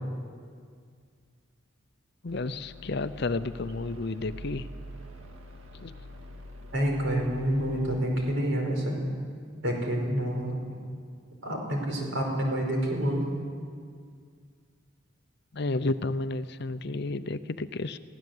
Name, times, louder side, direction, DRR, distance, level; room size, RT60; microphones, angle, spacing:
voice 1, 2.2-4.7 5.8-5.9 15.5-18.0, left 2 dB, 55° left, 12 dB, 0.6 m, -31 dB
sound 1, 2.3-8.0, left 1 dB, 85° right, 1.9 m, -45 dB
voice 2, 6.7-9.0 9.6-10.6 11.4-13.3, equal, 65° right, 1 dB, 4.9 m, -28 dB
22.5 x 16.0 x 8.0 m, 2.1 s
head